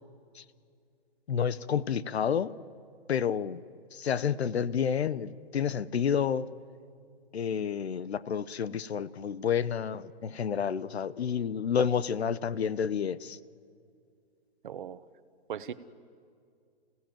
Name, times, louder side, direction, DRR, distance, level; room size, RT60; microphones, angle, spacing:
voice 1, 1.3-2.5 3.1-3.6 3.9-6.5 7.3-13.4, left 7 dB, 80° left, 17 dB, 1.0 m, -29 dB
voice 2, 14.6-15.0 15.5-15.7, right 8 dB, 50° right, 13 dB, 1.1 m, -37 dB
29.0 x 17.0 x 9.2 m, 2.3 s
hypercardioid pair, 170°, 32 cm